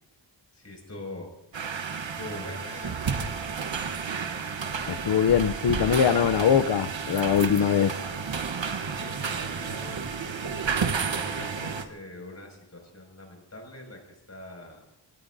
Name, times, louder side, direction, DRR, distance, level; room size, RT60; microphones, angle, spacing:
voice 1, 0.5-1.3 2.1-3.4 8.6-10.6 11.1-14.8, left 2 dB, 35° left, 1 dB, 6.2 m, -43 dB
sound 1, 1.5-11.8, right 5 dB, 75° right, 1.2 m, -31 dB
voice 2, 4.9-8.0, left 8 dB, 60° left, 12 dB, 0.6 m, -22 dB
24.0 x 18.0 x 2.7 m, 0.98 s
wide cardioid pair, 95°, 46 cm